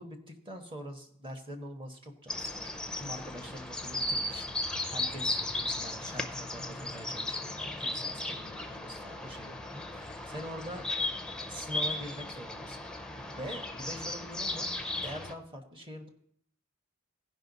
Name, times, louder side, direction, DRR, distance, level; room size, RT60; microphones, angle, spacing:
voice 1, 0.0-10.9 11.5-12.8 13.4-14.7 15.0-16.1, equal, 25° right, 4 dB, 1.2 m, -44 dB
sound 1, 2.3-15.3, left 2 dB, 5° left, 0.5 m, -36 dB
15.5 x 5.4 x 4.0 m, 0.68 s
head